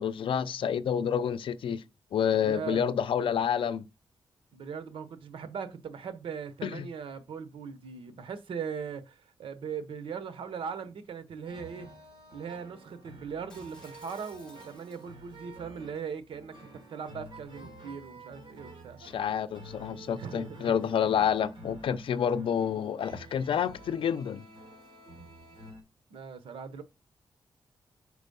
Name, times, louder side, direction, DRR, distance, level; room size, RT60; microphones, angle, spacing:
voice 1, 0.0-1.8 2.1-3.9 6.6-6.9 19.0-24.4, left 8 dB, 75° left, 0.5 m, -29 dB
voice 2, 2.4-2.8 4.5-11.9 12.3-19.0 19.9-20.8 26.1-26.8, right 6 dB, 80° right, 0.9 m, -39 dB
sound 1, 11.4-25.8, right 1 dB, 60° right, 2.1 m, -50 dB
Shatter, 13.5-15.3 15.7-16.0, left 2 dB, 10° left, 2.3 m, -56 dB
4.9 x 4.4 x 5.3 m
wide cardioid pair, 115°, 9 cm